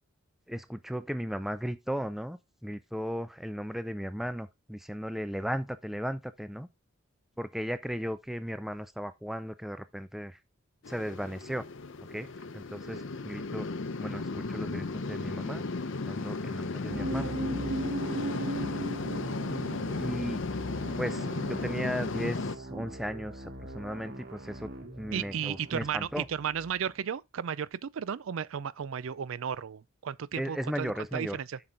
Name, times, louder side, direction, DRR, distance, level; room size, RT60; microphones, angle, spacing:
voice 1, 0.5-6.7 7.4-10.4 10.9-11.6 12.1-13.7 14.0-15.6 15.9-17.3 20.0-20.4 21.0-24.7 25.0-26.3 30.4-31.4, equal, ahead, 0.4 m, -36 dB
sound 1, 10.8-22.6, left 3 dB, 60° left, 0.6 m, -35 dB
sound 2, 16.9-26.8, right 1 dB, 45° right, 1.1 m, -39 dB
voice 2, 25.1-31.6, right 8 dB, 65° right, 0.4 m, -34 dB
7.7 x 5.9 x 3.7 m
head